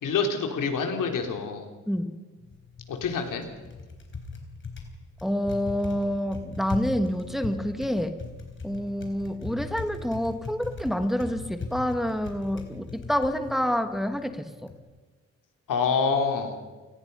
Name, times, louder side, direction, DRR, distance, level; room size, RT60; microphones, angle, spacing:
voice 1, 0.0-1.7 2.9-3.5 15.7-16.6, left 5 dB, 80° left, 4 dB, 3.4 m, -26 dB
Typing, 2.4-14.8, left 4 dB, 40° left, 4.3 m, -40 dB
voice 2, 5.2-8.1 8.6-14.5, equal, ahead, 8 dB, 1.5 m, -28 dB
29.0 x 19.0 x 5.5 m, 1.3 s
cardioid pair, 125°, 31 cm